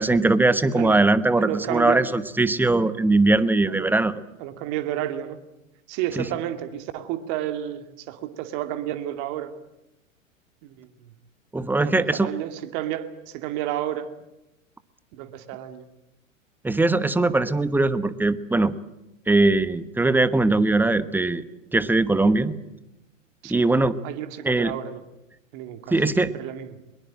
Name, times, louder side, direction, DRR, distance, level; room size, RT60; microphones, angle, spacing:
voice 1, 0.0-4.1 6.2-6.3 11.5-12.3 16.6-18.7 19.3-21.4 21.7-22.6 23.5-24.0 24.4-24.7 25.9-26.3, right 2 dB, 5° right, 15 dB, 1.1 m, -20 dB
voice 2, 1.4-2.1 3.7-3.9 4.4-5.4 5.9-9.5 10.6-11.1 11.8-14.1 15.1-15.8 23.4-23.6 24.0-25.0 25.5-25.9 26.3-26.8, right 12 dB, 45° right, 9 dB, 2.4 m, -31 dB
22.5 x 22.0 x 8.8 m, 0.91 s
hypercardioid pair, 105°, 40 cm